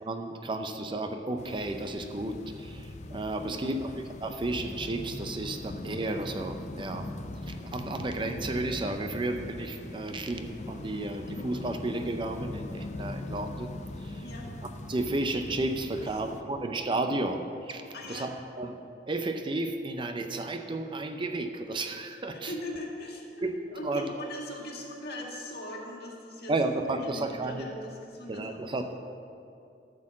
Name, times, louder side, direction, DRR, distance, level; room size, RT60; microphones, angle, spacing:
voice 1, 0.0-3.9 4.2-7.1 7.5-13.7 14.0-14.2 14.9-17.8 18.1-18.3 18.6-18.8 19.1-22.5 23.4-23.5 23.8-24.1 26.5-27.7 28.3-28.9, right 2 dB, 30° right, 6 dB, 0.5 m, -32 dB
sound 1, 1.4-16.4, left 2 dB, 40° left, 0.5 m, -41 dB
voice 2, 3.5-3.9 14.2-14.5 16.0-16.5 17.9-18.3 22.3-26.5 26.8-28.6, left 1 dB, 65° left, -1 dB, 1.7 m, -41 dB
12.0 x 4.4 x 7.4 m, 2.6 s
head